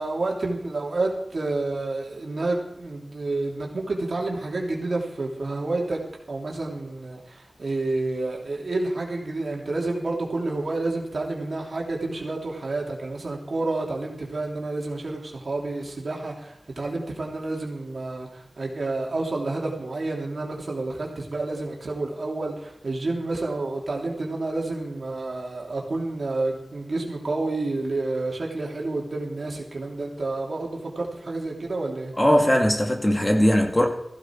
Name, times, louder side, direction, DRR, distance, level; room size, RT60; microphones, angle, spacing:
voice 1, 0.0-6.0 6.3-32.1, right 2 dB, 80° right, -1 dB, 2.9 m, -29 dB
voice 2, 32.2-33.9, equal, 25° left, 2 dB, 2.3 m, -19 dB
15.0 x 13.0 x 4.6 m, 0.80 s
wide cardioid pair, 55°, 0 cm